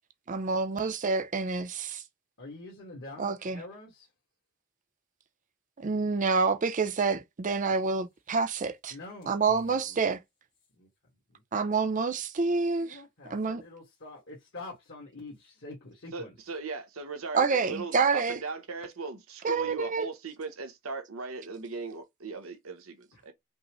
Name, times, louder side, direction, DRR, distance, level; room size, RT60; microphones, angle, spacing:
voice 1, 0.3-2.0 3.2-3.6 5.8-8.9 9.3-10.2 11.5-13.0 13.3-13.6 17.3-18.4 19.4-20.1, right 4 dB, 35° right, 0.5 m, -28 dB
voice 2, 2.4-4.1 8.9-10.0 10.7-10.9 11.3-11.4 12.8-16.3 23.1-23.3, left 2 dB, 60° left, 1.5 m, -46 dB
voice 3, 16.1-23.3, right 4 dB, 75° right, 0.9 m, -38 dB
5.2 x 2.1 x 3.0 m
head